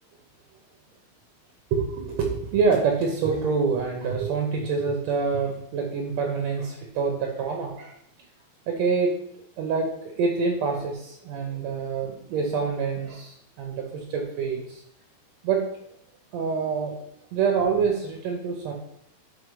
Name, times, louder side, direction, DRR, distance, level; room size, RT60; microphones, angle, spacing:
voice 1, 1.7-8.0 8.7-9.2 9.6-14.8 15.4-15.6 16.3-16.9 17.3-18.7, right 5 dB, 75° right, 2 dB, 1.6 m, -26 dB
6.5 x 4.5 x 4.8 m, 0.75 s
omnidirectional pair, 4.0 m